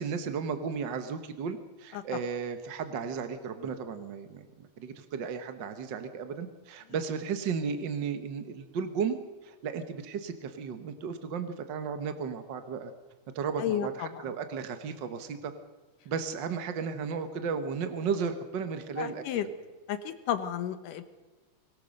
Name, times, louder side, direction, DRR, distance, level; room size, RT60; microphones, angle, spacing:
voice 1, 0.0-12.9 13.3-15.5 16.0-19.5, right 6 dB, 60° right, 8 dB, 1.2 m, -34 dB
voice 2, 13.6-14.3 19.0-19.5 19.9-21.0, left 9 dB, 80° left, 9 dB, 2.6 m, -32 dB
24.0 x 17.5 x 6.5 m, 1.3 s
omnidirectional pair, 3.7 m